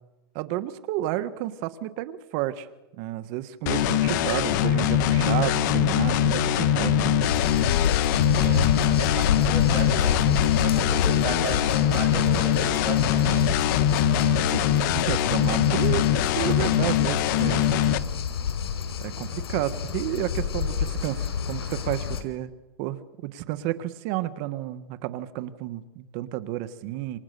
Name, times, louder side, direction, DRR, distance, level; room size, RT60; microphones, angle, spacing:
voice 1, 0.3-2.7 3.0-7.2 14.5-14.6 14.9-16.1 16.3-17.7 19.0-22.5 22.8-27.2, right 14 dB, 40° right, 12 dB, 1.4 m, -31 dB
sound 1, 3.7-18.0, left 10 dB, 50° left, 1.5 m, -22 dB
sound 2, 7.2-22.2, left 7 dB, 85° left, 4.5 m, -29 dB
voice 2, 8.3-13.5, right 5 dB, 20° right, 4 dB, 6.7 m, -36 dB
27.5 x 27.0 x 6.9 m, 1.0 s
supercardioid pair, 150°, 13 cm